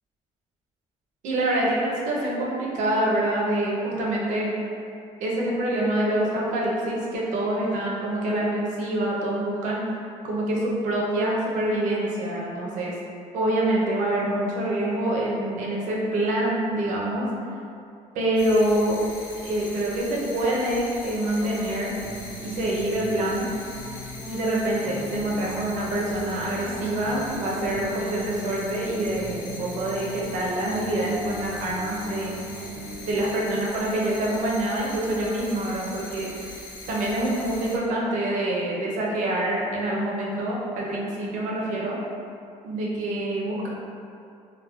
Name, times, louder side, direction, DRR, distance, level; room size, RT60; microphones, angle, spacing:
voice 1, 1.2-4.5 5.2-9.8 10.2-12.9 13.3-17.3 18.1-19.0 19.4-21.9 22.4-23.5 24.3-32.4 33.0-36.3 36.9-42.0 42.6-43.7, right 1 dB, 65° right, -4 dB, 0.6 m, -26 dB
sound 1, 18.4-37.8, left 2 dB, 85° left, 0.6 m, -41 dB
sound 2, 22.0-33.1, right 1 dB, 10° left, 0.4 m, -40 dB
3.0 x 2.0 x 2.3 m, 2.5 s
cardioid pair, 145°, 14 cm